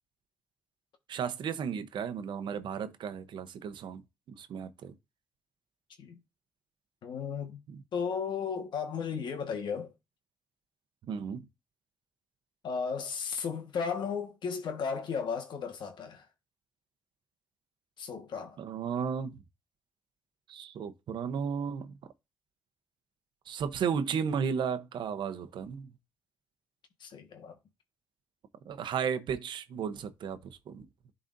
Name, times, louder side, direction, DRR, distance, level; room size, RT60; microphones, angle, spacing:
voice 1, 1.1-4.0 4.3-4.9 7.7-7.8 11.1-11.4 18.6-19.4 20.5-21.9 23.5-25.9 28.7-30.9, right 7 dB, 75° right, 0.8 m, -34 dB
voice 2, 7.0-7.6 7.9-9.9 12.6-16.3 18.0-18.6 27.0-27.6, left 6 dB, 75° left, 1.4 m, -35 dB
11.0 x 4.0 x 2.6 m
cardioid pair, 90°, 8 cm